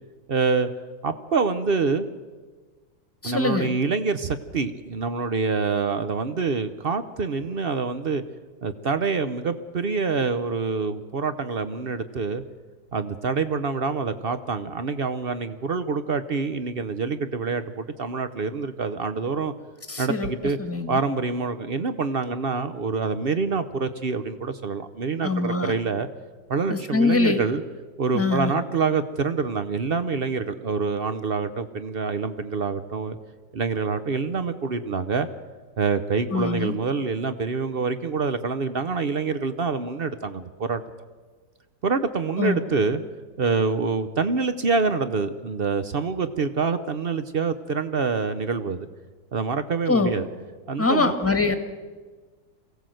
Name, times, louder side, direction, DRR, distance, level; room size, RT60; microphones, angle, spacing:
voice 1, 0.3-0.7 1.0-2.1 3.2-8.2 8.6-12.4 12.9-19.5 20.0-20.6 20.9-26.1 26.5-27.6 28.0-33.2 33.5-35.3 35.8-40.8 41.8-43.0 43.4-48.9 49.3-50.3 50.7-51.2, right 4 dB, 60° right, 11 dB, 0.6 m, -26 dB
voice 2, 3.2-3.7 19.9-20.3 20.6-21.0 25.2-25.7 26.7-27.4 28.1-28.5 36.3-36.8 42.4-42.6 49.9-50.1 50.8-51.5, left 3 dB, 10° left, 8 dB, 1.3 m, -23 dB
23.0 x 16.5 x 7.8 m, 1.4 s
omnidirectional pair, 2.1 m